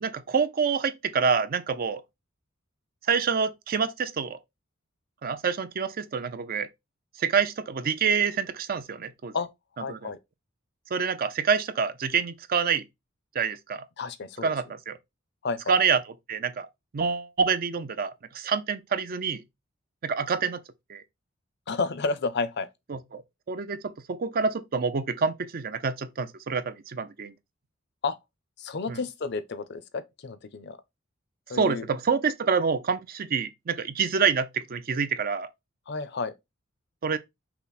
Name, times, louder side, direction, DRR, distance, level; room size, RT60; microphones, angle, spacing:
voice 1, 0.0-2.0 3.1-4.4 5.2-6.7 7.2-9.3 9.9-10.1 10.9-12.9 13.3-13.9 14.4-15.0 15.7-16.0 16.3-16.7 16.9-19.4 20.0-20.6 20.9-21.0 22.9-23.2 23.5-27.3 28.9-29.0 31.5-35.5 37.0-37.2, right 6 dB, 45° right, 0.5 m, -27 dB
voice 2, 9.8-10.2 14.0-14.5 15.4-15.7 21.7-22.7 28.0-28.2 28.6-30.8 31.5-31.9 35.9-36.3, left 4 dB, 55° left, 0.6 m, -31 dB
5.8 x 2.1 x 4.1 m
head